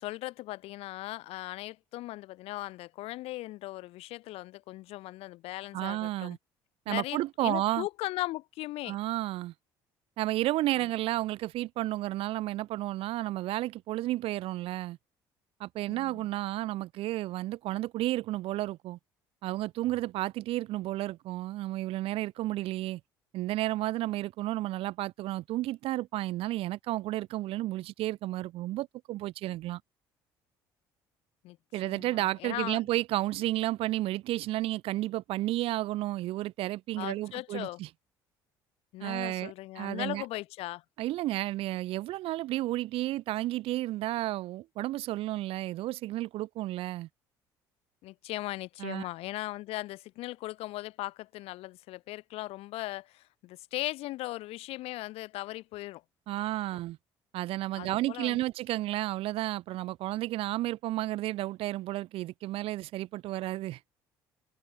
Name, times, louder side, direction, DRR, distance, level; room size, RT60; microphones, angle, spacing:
voice 1, 0.0-6.4 6.9-9.0 10.8-10.9 15.9-16.3 31.4-31.6 31.8-32.8 37.0-37.8 38.9-40.8 48.0-56.0 56.7-56.8 57.7-58.4, left 18 dB, 70° left, 1.2 m, -38 dB
voice 2, 5.7-6.4 6.9-7.9 8.9-9.5 10.2-15.0 15.6-19.0 19.4-23.0 23.3-29.8 31.7-37.9 39.0-40.2 41.0-47.1 48.8-49.1 56.3-57.0 57.3-63.8, right 16 dB, 60° right, 0.4 m, -32 dB
hypercardioid pair, 65°, 11 cm